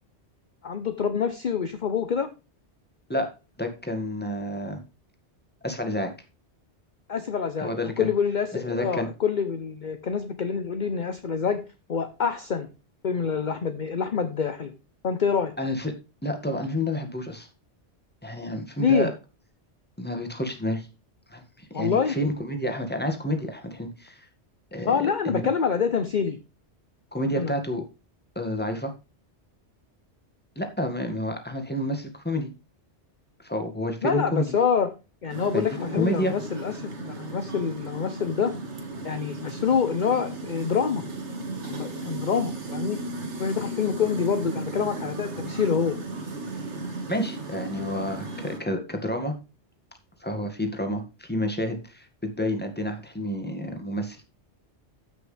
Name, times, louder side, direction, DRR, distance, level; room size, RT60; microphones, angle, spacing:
voice 1, 0.6-2.3 7.1-11.6 11.9-12.7 13.0-14.7 15.0-15.5 18.8-19.1 21.7-22.2 24.8-26.4 27.4-27.5 34.0-34.9 35.2-38.5 39.0-41.0 41.7-43.0 43.4-46.0, left 6 dB, 45° left, 9 dB, 0.9 m, -26 dB
voice 2, 3.6-4.8 5.6-6.1 7.6-8.1 8.6-9.1 15.6-15.9 16.2-17.5 18.2-19.1 20.0-20.9 21.3-24.3 24.7-24.9 25.2-25.4 27.1-27.8 28.4-28.9 30.6-32.5 33.4-34.5 35.5-36.3 47.1-49.3 50.2-54.2, left 1 dB, 10° left, 5 dB, 1.9 m, -29 dB
sound 1, 35.3-48.6, right 2 dB, 80° right, 2.2 m, -35 dB
14.5 x 6.2 x 3.3 m, 0.29 s
omnidirectional pair, 1.2 m